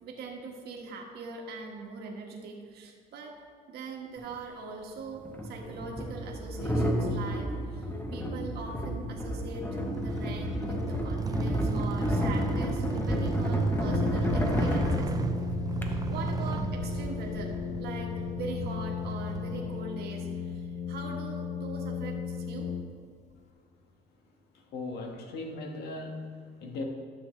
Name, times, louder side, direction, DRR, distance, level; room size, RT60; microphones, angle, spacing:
voice 1, 0.0-3.3 3.7-9.6 10.0-15.1 15.8-17.5 17.8-22.7, right 4 dB, 70° right, 1 dB, 1.6 m, -41 dB
sound 1, 4.2-4.3 5.2-15.9, equal, 10° left, 1.0 m, -31 dB
sound 2, 9.8-19.8, right 5 dB, 20° right, 0.5 m, -34 dB
Brass instrument, 13.8-23.3, left 7 dB, 45° left, 0.5 m, -35 dB
voice 2, 24.5-26.9, left 2 dB, 75° left, 2 dB, 1.4 m, -39 dB
12.5 x 6.5 x 3.2 m, 2.1 s
cardioid pair, 110°, 17 cm